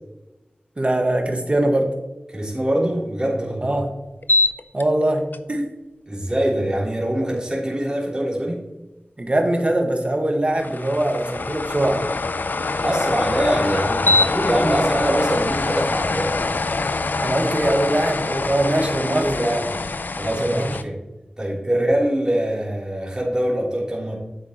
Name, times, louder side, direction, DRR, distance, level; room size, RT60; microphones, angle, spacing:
voice 1, 0.8-1.9 3.6-3.9 4.7-5.7 9.2-12.0 14.6-14.8 17.2-19.3 20.4-20.7 21.7-21.8, right 1 dB, 40° right, 3 dB, 1.6 m, -22 dB
voice 2, 2.3-3.8 6.0-8.6 12.6-16.5 18.9-19.6 20.2-20.9 21.4-24.2, right 1 dB, 25° right, -5 dB, 3.3 m, -23 dB
sound 1, 4.2-4.8 5.3-5.4 10.6-20.8, left 3 dB, 70° left, 0.5 m, -24 dB
9.7 x 8.2 x 3.0 m, 1.0 s
wide cardioid pair, 60°, 3 cm